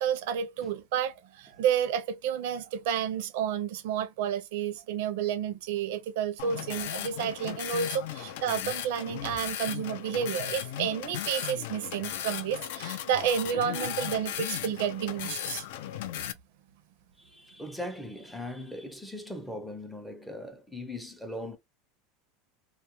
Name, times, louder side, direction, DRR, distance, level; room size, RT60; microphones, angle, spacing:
voice 1, 0.0-15.6, right 8 dB, 70° right, 0.4 m, -30 dB
sound 1, 6.4-16.3, left 11 dB, 70° left, 0.4 m, -36 dB
voice 2, 17.2-21.6, left 1 dB, ahead, 0.5 m, -40 dB
2.2 x 2.1 x 2.9 m
supercardioid pair, 150°, 0 cm